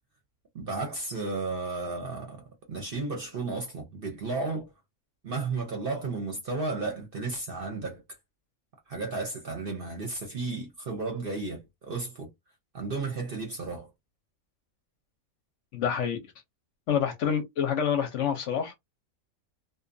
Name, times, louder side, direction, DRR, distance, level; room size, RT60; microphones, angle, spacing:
voice 1, 0.5-4.7 5.2-8.0 8.9-12.3 12.7-13.9, right 3 dB, 50° right, 0.7 m, -33 dB
voice 2, 15.7-16.2 16.9-18.7, left 8 dB, 65° left, 0.9 m, -27 dB
2.7 x 2.2 x 2.5 m
omnidirectional pair, 1.5 m